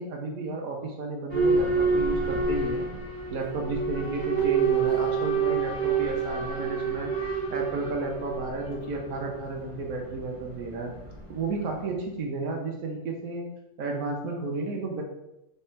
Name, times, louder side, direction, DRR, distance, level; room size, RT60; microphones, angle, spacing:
voice 1, 0.0-2.9 3.3-7.1 7.5-10.9 11.3-13.5 13.8-15.0, right 3 dB, 80° right, 1 dB, 1.1 m, -32 dB
Boat Water vehicle / Alarm, 1.3-12.0, right 5 dB, 5° right, 1.5 m, -28 dB
3.4 x 3.3 x 4.3 m, 0.90 s
omnidirectional pair, 1.5 m